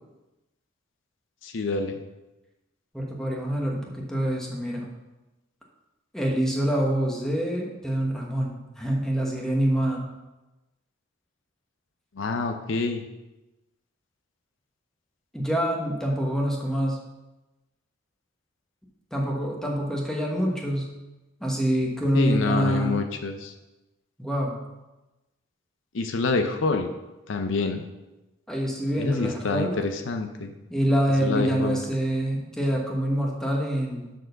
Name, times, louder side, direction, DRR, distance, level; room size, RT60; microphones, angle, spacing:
voice 1, 1.4-2.0 12.2-13.0 22.1-23.5 25.9-26.9 27.3-27.8 29.0-30.5 31.2-31.8, left 3 dB, 65° left, 6 dB, 0.6 m, -27 dB
voice 2, 2.9-4.9 6.1-10.1 15.3-17.0 19.1-20.9 21.4-23.0 24.2-24.6 28.5-29.7 30.7-34.1, equal, 5° left, -1 dB, 1.2 m, -26 dB
6.2 x 4.7 x 6.5 m, 1.0 s
head